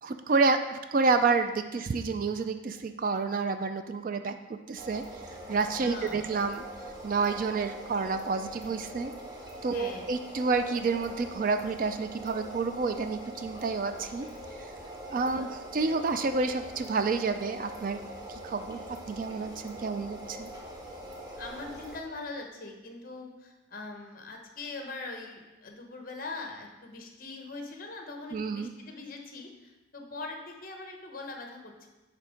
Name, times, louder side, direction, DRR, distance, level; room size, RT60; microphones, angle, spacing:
voice 1, 0.0-4.4 4.7-5.0 5.5-6.6 7.0-9.1 9.6-14.3 15.1-15.5 15.7-18.0 18.3-18.8 19.1-20.5 28.3-28.7, right 4 dB, 45° right, 8 dB, 0.3 m, -29 dB
sound 1, 4.8-22.0, right 1 dB, 20° right, 1.0 m, -43 dB
voice 2, 5.8-6.3 9.7-10.1 15.4-15.5 21.4-31.9, left 3 dB, 45° left, 3 dB, 0.9 m, -42 dB
8.9 x 3.5 x 5.0 m, 1.1 s
head